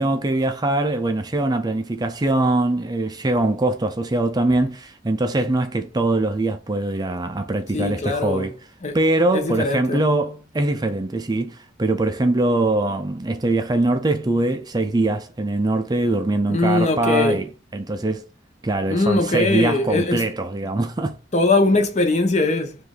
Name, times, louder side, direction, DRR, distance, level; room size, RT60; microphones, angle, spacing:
voice 1, 0.0-8.6 8.9-18.2 18.6-21.2, right 2 dB, 20° right, 0.5 m, -22 dB
voice 2, 7.7-8.5 8.8-9.0 9.3-10.0 16.5-17.4 18.9-20.2 21.3-22.8, left 2 dB, 40° left, 0.9 m, -21 dB
5.1 x 2.6 x 3.8 m
head